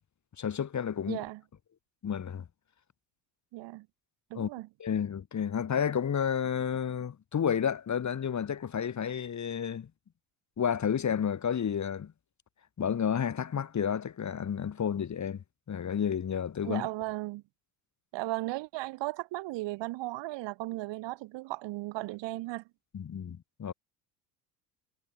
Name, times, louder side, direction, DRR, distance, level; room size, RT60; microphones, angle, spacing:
voice 1, 0.4-1.2 2.0-2.4 4.3-4.5 4.8-9.9 10.6-12.1 12.8-16.9 22.9-23.7, left 8 dB, 35° left, 3.0 m, -31 dB
voice 2, 1.1-1.4 3.5-3.9 4.3-4.7 16.6-17.4 18.1-22.6, right 19 dB, 60° right, 3.6 m, -36 dB
hypercardioid pair, 60°, 47 cm